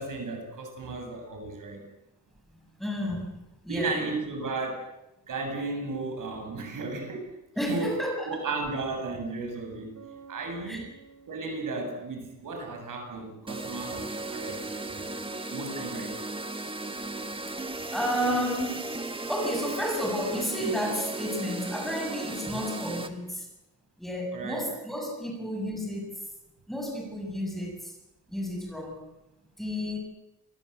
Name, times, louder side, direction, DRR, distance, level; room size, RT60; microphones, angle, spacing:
voice 1, 0.0-1.8 3.7-4.9 5.3-7.3 7.7-8.0 8.3-10.0 10.3-10.9 11.3-14.6 15.5-16.1 24.3-24.6, right 3 dB, 85° right, 4 dB, 7.6 m, -34 dB
voice 2, 2.8-4.0 7.6-8.3 10.6-10.8 17.9-18.9 19.3-23.5 24.0-26.2 26.7-27.9 28.3-29.0 29.6-30.0, equal, ahead, 0 dB, 7.4 m, -31 dB
Bass guitar, 9.9-13.6, right 5 dB, 65° right, 3.9 m, -54 dB
sound 1, 13.5-23.1, right 2 dB, 15° right, 1.8 m, -36 dB
27.0 x 22.0 x 8.3 m, 0.95 s
wide cardioid pair, 170°, 31 cm